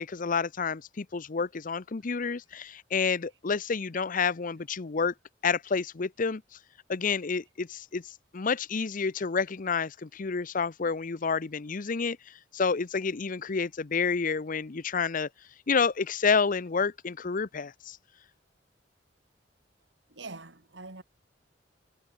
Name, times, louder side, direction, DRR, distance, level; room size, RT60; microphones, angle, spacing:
voice 1, 0.0-5.1 5.4-6.4 6.9-15.3 15.7-18.0, left 5 dB, 50° left, 0.7 m, -29 dB
voice 2, 20.1-21.0, right 3 dB, 90° right, 3.4 m, -43 dB
head